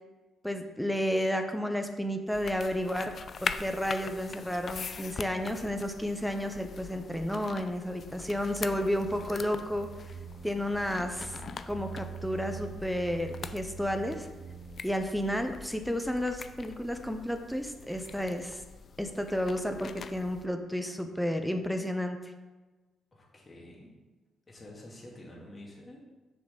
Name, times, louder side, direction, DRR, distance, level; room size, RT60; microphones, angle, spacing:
voice 1, 0.4-3.1 3.4-9.9 10.4-11.4 11.7-14.3 14.8-18.6 19.0-22.2, equal, ahead, 6 dB, 0.8 m, -32 dB
sound 1, 2.3-20.5, left 5 dB, 45° left, 0.5 m, -43 dB
sound 2, 9.0-15.0, right 8 dB, 45° right, 0.4 m, -45 dB
voice 2, 23.1-23.9 24.5-26.0, left 1 dB, 30° left, -2 dB, 2.6 m, -48 dB
6.6 x 6.5 x 5.4 m, 1.2 s
cardioid pair, 90°, 0 cm